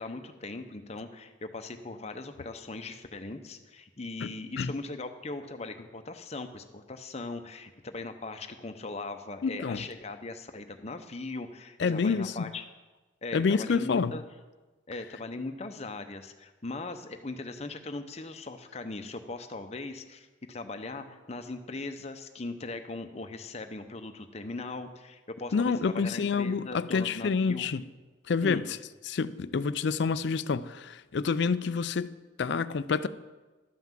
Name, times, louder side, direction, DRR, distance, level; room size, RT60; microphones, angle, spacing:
voice 1, 0.0-12.6 13.2-14.2 14.9-27.7 28.4-28.6, left 3 dB, 30° left, 0.7 m, -39 dB
voice 2, 9.4-9.8 11.8-12.5 13.3-14.1 25.5-27.8 28.3-28.6 29.1-32.1 32.4-33.1, left 5 dB, 55° left, 0.4 m, -28 dB
12.0 x 5.8 x 7.4 m
head